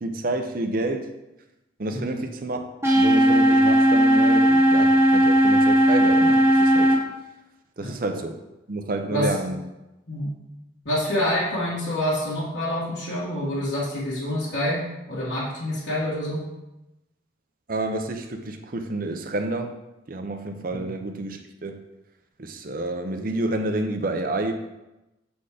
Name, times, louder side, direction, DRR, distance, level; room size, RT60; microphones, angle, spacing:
voice 1, 0.0-1.1 1.8-6.9 7.8-8.4 8.7-9.6 17.7-19.8 20.1-21.8 22.4-24.5, right 2 dB, 45° right, 6 dB, 0.7 m, -29 dB
sound 1, 2.8-7.0, equal, 15° right, 1.1 m, -17 dB
voice 2, 10.9-16.4 20.7-20.9, left 1 dB, 60° left, -10 dB, 1.7 m, -27 dB
7.1 x 4.3 x 4.9 m, 0.96 s
head